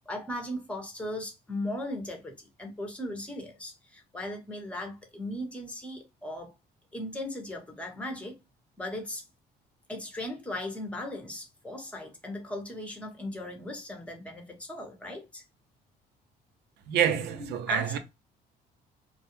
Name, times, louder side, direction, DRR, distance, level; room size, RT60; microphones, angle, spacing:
voice 1, 0.1-6.5 6.9-8.4 8.8-9.2 9.9-15.4 17.4-18.0, left 1 dB, 5° left, 0.8 m, -37 dB
voice 2, 16.9-18.0, right 9 dB, 75° right, 0.5 m, -27 dB
2.3 x 2.0 x 2.8 m
cardioid pair, 110°, 17 cm